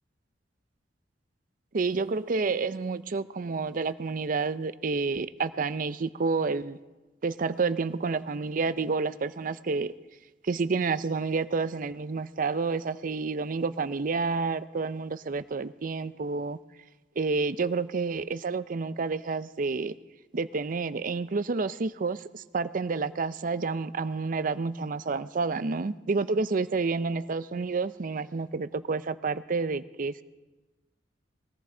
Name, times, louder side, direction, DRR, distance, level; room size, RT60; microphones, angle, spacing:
voice 1, 1.7-6.8 7.2-9.9 10.4-16.6 17.2-19.9 20.3-30.2, right 4 dB, 50° right, 14 dB, 0.5 m, -29 dB
21.5 x 17.5 x 3.8 m, 1.2 s
head